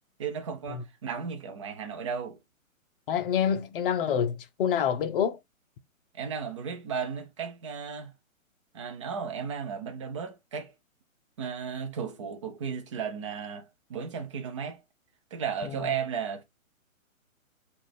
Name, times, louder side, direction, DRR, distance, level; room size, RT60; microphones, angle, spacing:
voice 1, 0.2-2.4 6.1-8.1 8.7-10.7 11.4-14.8 15.3-16.4, right 6 dB, 25° right, 0.5 m, -34 dB
voice 2, 3.1-5.4, left 8 dB, 40° left, 0.6 m, -27 dB
3.9 x 2.4 x 3.3 m
hypercardioid pair, 140°, 41 cm